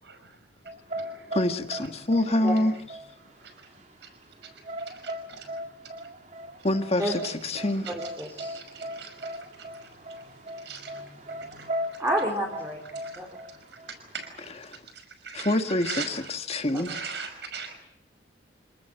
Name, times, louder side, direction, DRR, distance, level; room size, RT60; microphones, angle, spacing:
sound 1, 0.7-14.5, equal, 40° right, 3.6 m, -39 dB
voice 1, 1.3-2.7 6.6-7.9 14.4-14.8 15.3-17.0, left 1 dB, 35° left, 1.8 m, -26 dB
voice 2, 5.0-5.4 8.4-9.3 10.7-10.9 11.6-11.7 13.0-13.1 14.1-14.3 15.2-15.6 15.9-16.1 16.8-17.7, right 5 dB, 65° right, 5.6 m, -38 dB
voice 3, 7.9-8.6 12.0-12.8 13.2-13.3 16.7-16.8, right 1 dB, 15° right, 4.0 m, -29 dB
28.5 x 19.5 x 7.9 m
head